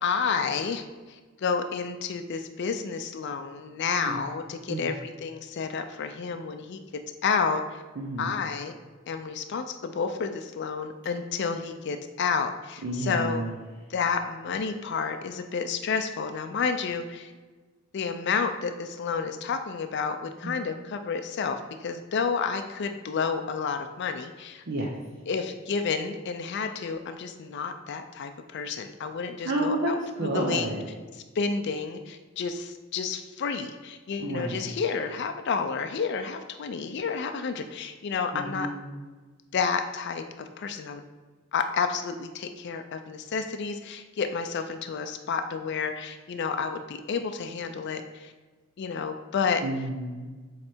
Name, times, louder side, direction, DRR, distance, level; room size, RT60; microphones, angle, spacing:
voice 1, 0.0-6.8 7.2-7.8 8.2-8.7 9.1-13.4 13.9-17.3 17.9-24.6 25.3-30.7 31.4-38.7 39.5-41.0 41.5-48.3 48.8-49.6, left 5 dB, 60° left, 7 dB, 0.4 m, -30 dB
voice 2, 8.0-8.4 12.8-13.6 20.4-20.6 24.6-24.9 29.4-30.8 34.2-34.7 38.3-38.9 49.6-50.3, right 1 dB, 60° right, -2 dB, 0.8 m, -30 dB
7.7 x 3.2 x 4.4 m, 1.3 s
head